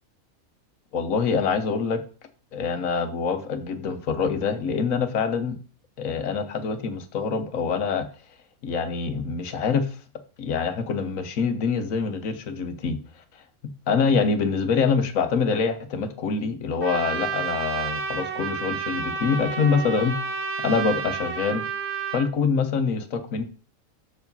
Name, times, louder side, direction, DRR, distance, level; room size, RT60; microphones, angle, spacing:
voice 1, 0.9-2.0 2.5-5.6 6.0-8.1 8.6-10.0 10.4-13.0 13.9-20.4 20.6-21.6 22.1-23.4, left 5 dB, 75° left, 9 dB, 1.4 m, -25 dB
Trumpet, 16.8-22.3, right 6 dB, 55° right, 1.1 m, -30 dB
6.9 x 4.8 x 5.4 m, 0.38 s
omnidirectional pair, 1.4 m